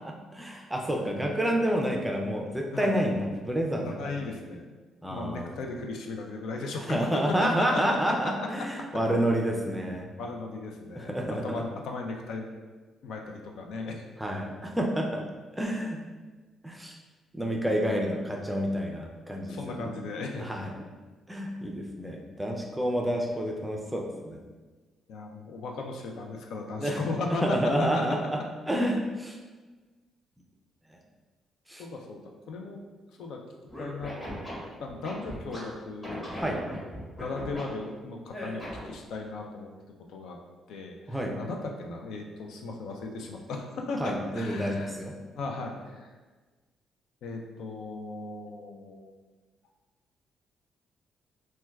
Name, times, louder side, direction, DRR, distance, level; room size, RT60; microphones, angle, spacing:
voice 1, 0.0-4.1 5.0-5.5 6.9-10.1 10.9-11.6 14.2-15.2 15.5-16.0 16.6-17.0 17.3-19.9 20.4-20.9 21.3-24.4 26.8-27.0 27.4-28.4 28.7-29.4 31.7-31.8 36.4-36.6 41.1-41.4 44.0-45.1, equal, 5° right, 1 dB, 0.4 m, -29 dB
voice 2, 3.7-4.7 5.1-7.8 8.2-8.3 8.6-8.7 10.2-11.1 11.4-12.5 13.0-14.0 19.5-20.5 25.1-28.0 31.8-32.8 33.1-33.4 33.8-34.2 34.8-36.3 37.2-39.7 40.1-40.4 40.7-45.0 45.3-46.1 47.2-49.1, left 3 dB, 80° left, 2 dB, 0.4 m, -36 dB
Scratching (performance technique), 33.7-35.6 36.0-37.6 38.3-39.0, equal, 20° left, 1.2 m, -38 dB
4.2 x 2.1 x 2.3 m, 1.3 s
cardioid pair, 90°, 0 cm